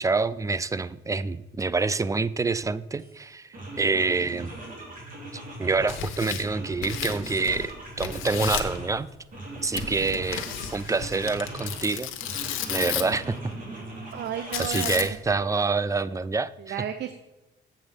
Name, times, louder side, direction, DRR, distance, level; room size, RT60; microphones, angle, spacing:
voice 1, 0.0-3.5 3.8-4.5 5.6-9.1 9.6-10.5 10.7-12.1 12.7-13.5 14.6-16.7, right 4 dB, 15° right, 17 dB, 0.3 m, -27 dB
sound 1, 3.0-3.1 3.5-6.1 6.4-9.0 9.3-11.8 12.2-14.6, right 2 dB, 45° right, 3.6 m, -40 dB
Tearing, 5.7-7.7 8.0-8.8 9.7-13.2 14.5-15.3, left 10 dB, 90° left, 0.9 m, -33 dB
voice 2, 14.1-15.2 16.6-17.1, right 8 dB, 60° right, 9 dB, 0.6 m, -33 dB
7.9 x 7.1 x 5.1 m, 1.0 s
cardioid pair, 90°, 20 cm